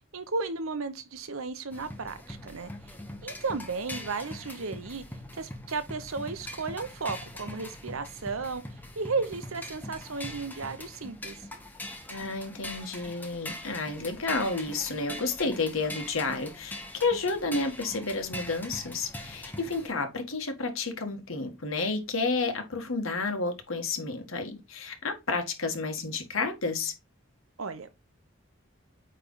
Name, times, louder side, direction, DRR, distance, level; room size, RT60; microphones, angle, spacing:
voice 1, 0.1-3.0 3.2-5.0 5.4-8.6 9.0-11.5 27.6-27.9, right 4 dB, 80° right, 0.9 m, -34 dB
sound 1, 1.7-19.9, left 1 dB, 10° left, 0.9 m, -42 dB
voice 2, 12.1-26.9, left 3 dB, 75° left, 1.6 m, -31 dB
8.9 x 3.4 x 3.9 m
head